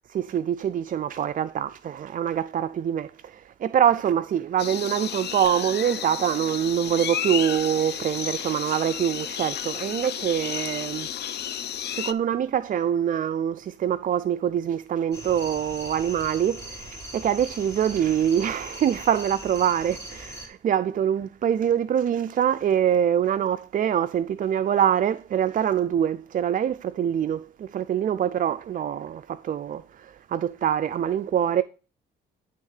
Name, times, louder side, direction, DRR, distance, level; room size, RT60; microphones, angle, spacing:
voice 1, 0.1-11.1 11.9-31.6, right 9 dB, 45° right, 0.4 m, -25 dB
sound 1, 4.6-12.1, left 9 dB, 55° left, 0.6 m, -32 dB
sound 2, 15.1-20.5, equal, 15° left, 3.3 m, -40 dB
10.5 x 3.6 x 6.4 m
cardioid pair, 90°, 20 cm